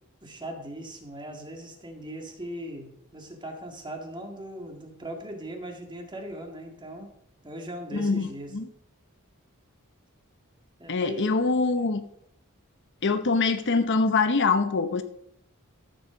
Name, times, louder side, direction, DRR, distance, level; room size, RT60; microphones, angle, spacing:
voice 1, 0.2-7.1 7.4-8.6 10.8-11.3, right 1 dB, 20° right, 3 dB, 2.0 m, -39 dB
voice 2, 7.9-8.7 10.9-12.0 13.0-15.0, left 4 dB, 55° left, 10 dB, 0.8 m, -24 dB
14.0 x 7.4 x 5.1 m, 0.72 s
head